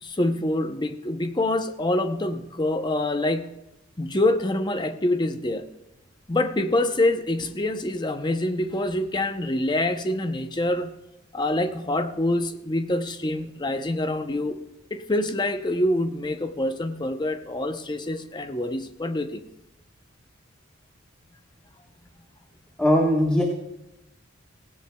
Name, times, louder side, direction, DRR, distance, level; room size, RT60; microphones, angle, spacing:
voice 1, 0.0-3.5 4.0-5.7 6.3-10.9 11.3-14.6 14.9-19.4, left 1 dB, 20° left, 7 dB, 0.7 m, -26 dB
voice 2, 22.8-23.4, equal, 5° left, -2 dB, 1.3 m, -19 dB
18.0 x 17.0 x 2.3 m, 0.94 s
head